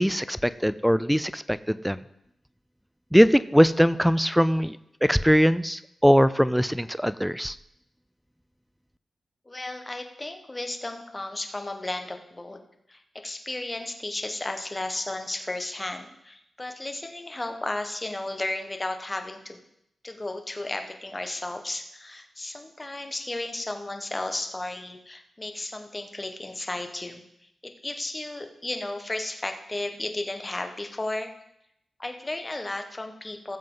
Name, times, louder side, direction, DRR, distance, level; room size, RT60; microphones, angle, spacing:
voice 1, 0.0-2.0 3.1-7.5, equal, ahead, 16 dB, 0.4 m, -21 dB
voice 2, 9.5-12.6 12.9-19.6 20.0-27.2 27.6-31.3 32.0-33.6, left 2 dB, 25° left, 6 dB, 1.3 m, -34 dB
16.5 x 7.5 x 3.9 m, 0.80 s
cardioid pair, 65°, 0 cm